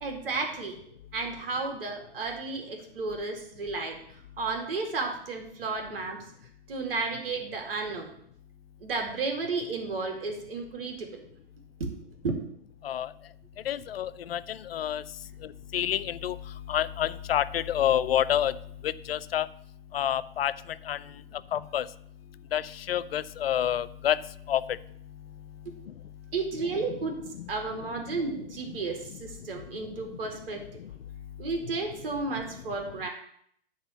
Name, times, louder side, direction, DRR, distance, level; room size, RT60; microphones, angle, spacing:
voice 1, 0.0-0.8 1.1-4.0 4.4-6.2 6.7-8.1 8.8-11.1 11.8-11.9 12.2-12.3 26.3-27.2 27.5-30.6 31.4-33.1, right 3 dB, 70° right, 3 dB, 2.4 m, -32 dB
voice 2, 13.7-15.0 15.7-16.4 16.7-18.5 18.8-19.5 19.9-20.5 20.9-21.0 21.5-21.9 22.5-24.2 24.5-24.6 27.0-27.4, left 10 dB, 75° left, 16 dB, 0.5 m, -28 dB
10.5 x 3.8 x 7.2 m, 0.67 s
hypercardioid pair, 115°, 30 cm